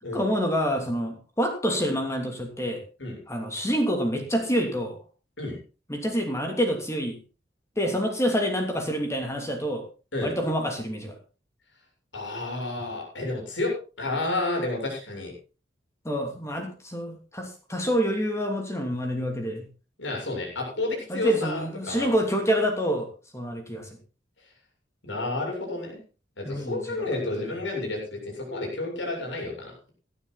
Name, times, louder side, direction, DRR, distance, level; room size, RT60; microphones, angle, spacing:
voice 1, 0.1-2.8 3.3-5.0 5.9-7.2 7.8-9.8 10.2-11.2 16.0-19.7 21.1-23.1 23.3-23.9 26.4-27.1, equal, 15° left, 3 dB, 2.8 m, -27 dB
voice 2, 12.1-15.3 20.0-22.1 25.0-26.0 26.4-29.9, left 2 dB, 85° left, 0 dB, 7.5 m, -31 dB
17.5 x 12.0 x 4.1 m, 0.35 s
head